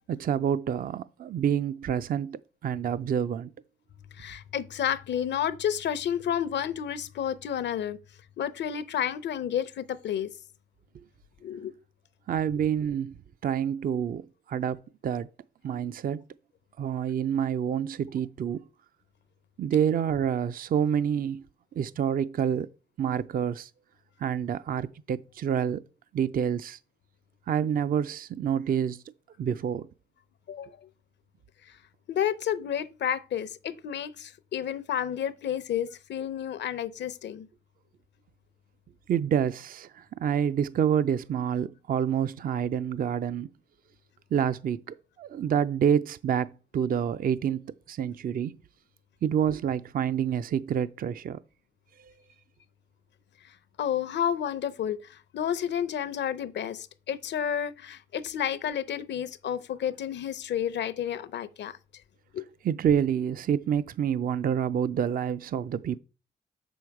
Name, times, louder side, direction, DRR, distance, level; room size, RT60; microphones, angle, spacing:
voice 1, 0.1-3.5 12.3-13.2 13.4-15.3 15.6-16.2 16.8-18.6 19.6-21.4 21.8-22.7 23.0-23.7 24.2-25.8 26.1-26.8 27.5-29.0 29.4-29.9 39.1-43.5 44.3-48.6 49.2-51.4 52.0-52.1 62.6-66.0, right 8 dB, 55° right, 0.4 m, -28 dB
voice 2, 4.2-8.0 8.4-10.3 11.4-11.7 30.5-30.8 32.1-37.5 53.8-61.8 62.3-62.4, left 9 dB, 75° left, 0.6 m, -31 dB
6.9 x 6.2 x 4.7 m
cardioid pair, 80°, 18 cm